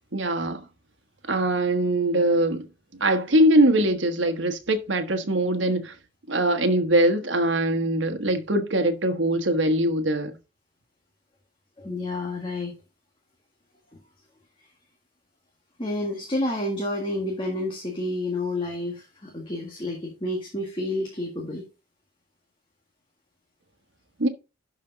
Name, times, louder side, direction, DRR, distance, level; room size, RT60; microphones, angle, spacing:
voice 1, 0.1-0.6 1.3-2.7 3.0-5.9 6.3-10.4 24.2-24.3, right 1 dB, 75° right, 1.3 m, -22 dB
voice 2, 11.8-12.7 13.9-14.0 15.8-21.6, left 1 dB, 25° left, 1.8 m, -30 dB
11.5 x 5.1 x 3.9 m
head